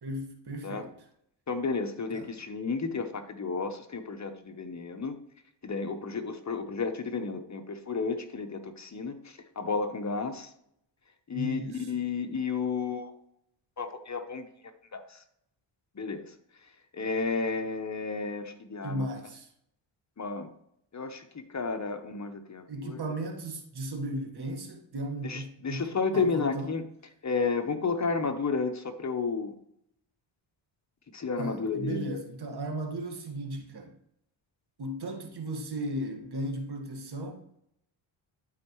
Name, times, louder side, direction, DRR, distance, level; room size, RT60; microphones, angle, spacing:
voice 1, 0.0-0.9 2.1-2.3 11.3-11.9 18.8-19.5 22.7-25.9 26.1-26.7 31.4-33.9 34.8-37.4, right 1 dB, 55° right, 1.7 m, -36 dB
voice 2, 1.5-5.2 5.6-10.5 11.3-13.1 13.8-14.4 14.9-15.2 16.0-16.3 16.9-19.1 20.2-20.5 20.9-21.2 21.5-23.0 25.2-26.8 27.2-29.5 31.1-32.1, left 4 dB, 35° left, 0.9 m, -32 dB
12.0 x 4.5 x 3.1 m
cardioid pair, 70°, 48 cm